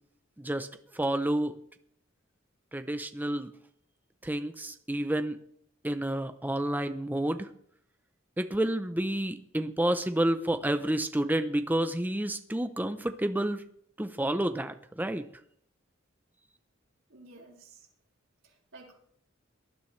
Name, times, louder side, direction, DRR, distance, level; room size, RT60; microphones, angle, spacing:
voice 1, 0.4-0.7 0.9-1.5 2.7-3.5 4.2-5.4 5.8-7.5 8.4-13.6 14.0-15.2, right 1 dB, 10° right, 8 dB, 0.7 m, -29 dB
voice 2, 17.1-17.9 18.4-19.0, right 2 dB, 85° right, -3 dB, 4.6 m, -52 dB
19.0 x 12.5 x 3.3 m, 0.65 s
head